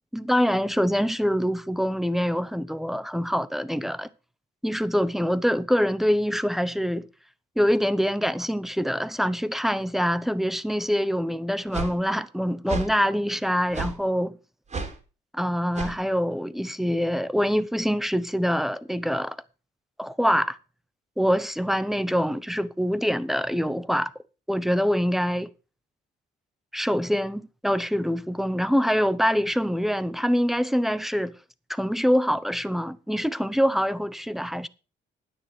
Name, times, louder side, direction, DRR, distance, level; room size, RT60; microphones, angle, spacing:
voice 1, 0.1-4.1 4.6-7.1 7.6-14.3 15.3-19.4 20.0-20.6 21.2-24.1 24.5-25.5 26.7-31.3 31.7-34.7, equal, ahead, 0.9 m, -25 dB
sound 1, 11.7-11.9 12.7-12.9 13.7-14.0 14.7-14.9 15.7-15.9, right 4 dB, 35° right, 3.3 m, -31 dB
9.9 x 9.5 x 5.5 m
cardioid pair, 90°, 20 cm